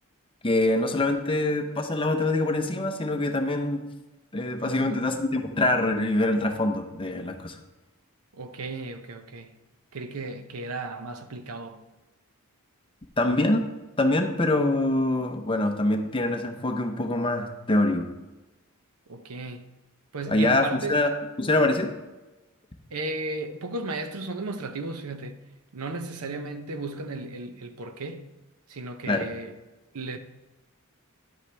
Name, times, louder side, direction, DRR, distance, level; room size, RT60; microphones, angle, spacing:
voice 1, 0.4-3.8 4.3-7.6 13.2-13.7 14.0-18.1 20.3-21.1 21.4-21.9 29.1-29.3, left 2 dB, 25° left, 0.7 m, -24 dB
voice 2, 4.6-5.0 8.3-9.5 9.9-11.8 19.1-19.7 20.1-21.0 22.9-25.4 25.7-28.3 28.7-29.5 29.9-30.2, right 2 dB, 80° right, 0.8 m, -35 dB
10.5 x 8.0 x 3.3 m
head